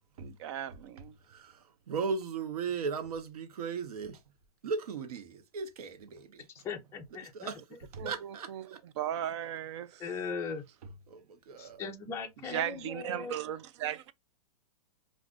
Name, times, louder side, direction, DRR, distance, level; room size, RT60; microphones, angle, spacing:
voice 1, 0.2-1.2 8.0-10.0 12.4-14.1, right 11 dB, 50° right, 0.4 m, -37 dB
voice 2, 1.3-4.2 4.6-6.6 7.3-7.6 7.9-8.8 11.1-11.8, right 5 dB, 80° right, 0.8 m, -37 dB
voice 3, 6.5-7.5 8.0-8.1 10.0-10.6 11.6-13.3, left 5 dB, 15° left, 0.5 m, -39 dB
2.4 x 2.4 x 3.6 m
hypercardioid pair, 150°, 19 cm